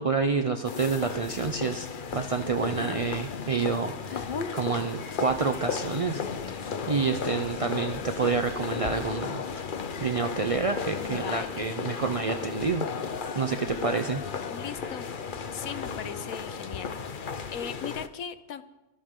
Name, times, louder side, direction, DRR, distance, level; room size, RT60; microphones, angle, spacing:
voice 1, 0.0-6.2 6.5-9.7 10.0-12.9 13.3-14.2, right 4 dB, 45° right, 7 dB, 0.4 m, -28 dB
sound 1, 0.7-18.1, left 5 dB, 40° left, 0.8 m, -35 dB
voice 2, 11.0-11.7 14.5-15.1 15.5-18.6, left 8 dB, 65° left, 12 dB, 1.3 m, -39 dB
25.0 x 14.5 x 3.8 m, 1.1 s
omnidirectional pair, 1.6 m